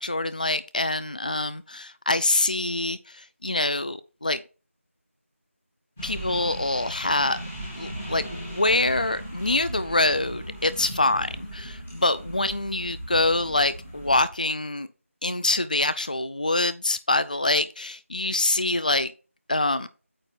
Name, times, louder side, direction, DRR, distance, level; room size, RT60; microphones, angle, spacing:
voice 1, 0.0-4.4 6.0-7.4 7.8-14.9 15.2-19.1 19.5-19.9, left 2 dB, 35° left, 0.4 m, -25 dB
sound 1, 6.0-14.3, right 1 dB, 5° left, 0.7 m, -38 dB
8.9 x 3.0 x 5.8 m
figure-of-eight pair, 175°, 8 cm